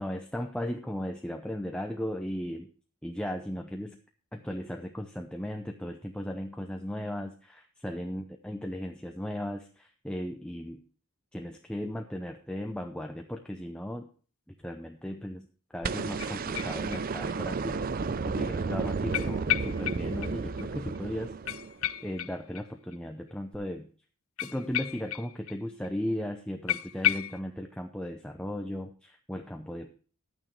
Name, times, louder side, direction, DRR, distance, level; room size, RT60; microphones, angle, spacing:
voice 1, 0.0-2.7 3.0-4.0 4.3-10.8 11.3-14.1 14.5-15.5 15.7-21.3 22.0-23.9 24.4-29.9, equal, 5° left, 3 dB, 0.6 m, -36 dB
sound 1, 15.8-22.0 23.5-23.6, right 4 dB, 40° right, 0.4 m, -32 dB
sound 2, 16.2-17.3 17.6-17.7 19.1-20.3 20.6-20.7 20.9-21.0 21.5-23.0 24.4-25.6 25.8-25.9 26.2-26.3 26.7-27.4, left 13 dB, 70° left, 0.5 m, -33 dB
11.0 x 9.1 x 4.7 m, 0.40 s
head